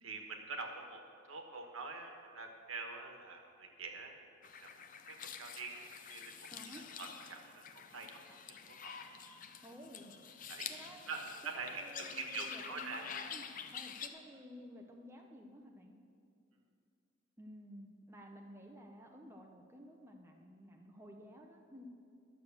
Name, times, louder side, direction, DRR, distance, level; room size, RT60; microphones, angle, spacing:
voice 1, 0.0-1.0 1.3-4.2 4.6-4.7 5.1-6.5 6.7-7.6 7.9-8.1 8.7-9.1 10.5-13.0, right 4 dB, 85° right, 3 dB, 1.3 m, -45 dB
sound 1, 4.4-14.1, left 7 dB, 40° left, 0.5 m, -48 dB
voice 2, 6.5-6.9 9.6-10.1 10.7-11.1 11.4-13.5 13.7-15.9 17.4-21.9, equal, 10° right, 1 dB, 0.8 m, -53 dB
11.0 x 6.6 x 7.1 m, 2.5 s
head